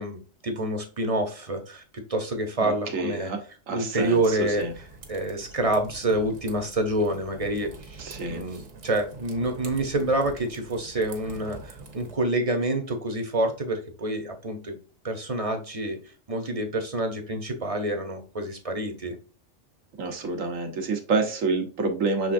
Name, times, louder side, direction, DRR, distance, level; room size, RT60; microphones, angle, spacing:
voice 1, 0.0-3.3 3.7-4.7 5.1-14.8 15.0-16.0 16.3-19.2, right 1 dB, 35° right, 5 dB, 0.7 m, -27 dB
voice 2, 2.6-3.4 3.7-4.7 8.0-8.4 20.0-22.3, right 3 dB, 90° right, 4 dB, 1.4 m, -28 dB
sound 1, 3.9-12.2, right 3 dB, 70° right, 1.3 m, -45 dB
6.2 x 3.3 x 2.5 m, 0.36 s
omnidirectional pair, 1.3 m